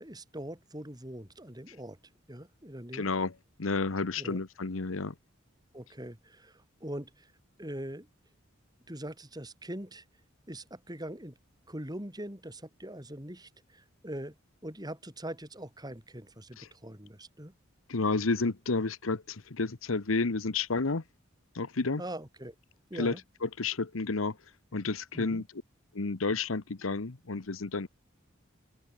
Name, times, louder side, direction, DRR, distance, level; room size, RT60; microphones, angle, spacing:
voice 1, 0.0-2.0 2.3-3.1 4.2-4.4 5.7-7.3 7.6-8.1 8.9-10.0 10.5-11.4 11.7-14.3 14.6-17.5 22.0-22.5 22.9-23.2 25.1-25.4, right 1 dB, 20° right, 6.0 m, -42 dB
voice 2, 2.9-3.3 3.6-5.1 16.6-16.7 17.9-21.0 21.5-22.0 23.0-23.1 23.4-24.4 24.7-25.4 25.9-27.9, left 3 dB, 90° left, 1.1 m, -31 dB
open air
head